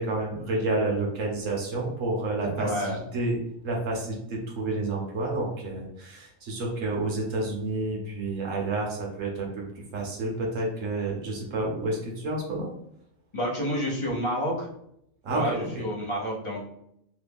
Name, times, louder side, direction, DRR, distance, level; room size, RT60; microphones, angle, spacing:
voice 1, 0.0-3.4 3.6-9.6 9.9-12.7 15.2-15.8, right 2 dB, 70° right, -1 dB, 1.1 m, -29 dB
voice 2, 2.6-3.0 13.3-14.7 15.3-16.6, equal, 30° left, -3 dB, 0.7 m, -29 dB
3.2 x 2.3 x 3.4 m, 0.75 s
omnidirectional pair, 1.4 m